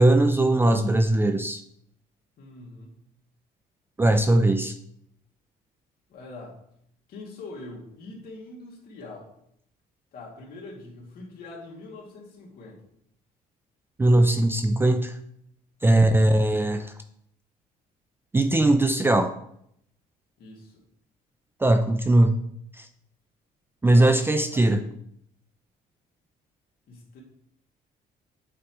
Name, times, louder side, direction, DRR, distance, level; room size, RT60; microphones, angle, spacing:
voice 1, 0.0-1.6 4.0-4.7 14.0-15.1 15.8-16.9 18.3-19.3 21.6-22.3 22.8-22.9 23.8-24.8, right 1 dB, 15° right, 8 dB, 0.4 m, -20 dB
voice 2, 2.4-3.0 6.1-6.6 7.1-9.3 10.1-12.8 15.9-16.1 20.4-20.8 23.9-24.1 24.5-24.9 26.9-27.2, left 2 dB, 65° left, -3 dB, 2.2 m, -43 dB
8.3 x 4.8 x 3.0 m, 0.71 s
cardioid pair, 110°, 17 cm